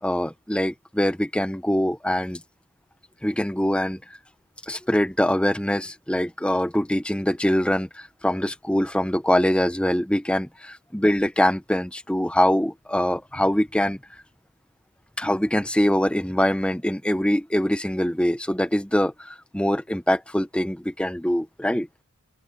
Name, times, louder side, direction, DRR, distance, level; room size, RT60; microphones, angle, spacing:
voice 1, 0.0-2.4 3.2-4.2 4.7-14.0 15.2-21.9, left 1 dB, 5° left, 0.8 m, -23 dB
open air
head